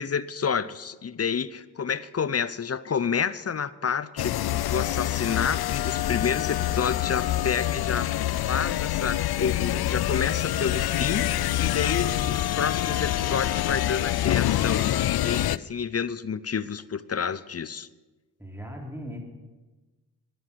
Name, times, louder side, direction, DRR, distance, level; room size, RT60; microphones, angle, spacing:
voice 1, 0.0-8.2 8.5-17.9, left 6 dB, 35° left, 17 dB, 0.8 m, -29 dB
sound 1, 4.2-15.6, left 13 dB, 70° left, 0.5 m, -26 dB
voice 2, 18.4-19.2, equal, 5° right, 2 dB, 3.5 m, -38 dB
12.5 x 10.5 x 8.5 m, 1.2 s
cardioid pair, 55°, 40 cm